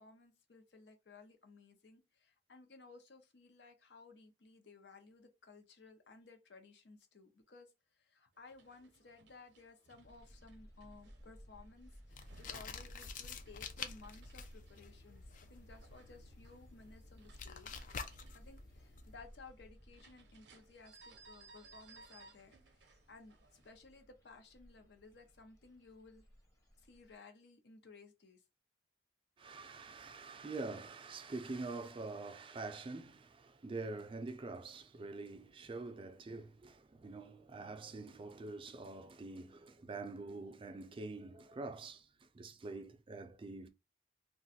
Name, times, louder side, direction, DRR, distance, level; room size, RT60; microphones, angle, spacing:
voice 1, 0.0-17.7 18.3-23.4 23.6-26.2 26.8-28.4, left 3 dB, 70° left, 0.7 m, -58 dB
sound 1, 8.4-23.7, right 3 dB, 75° right, 0.6 m, -64 dB
sound 2, 10.0-27.1, equal, 20° left, 0.8 m, -60 dB
sound 3, 12.1-19.2, left 6 dB, 50° left, 0.4 m, -49 dB
voice 2, 29.4-43.7, right 3 dB, 30° right, 0.4 m, -45 dB
2.5 x 2.3 x 4.0 m
head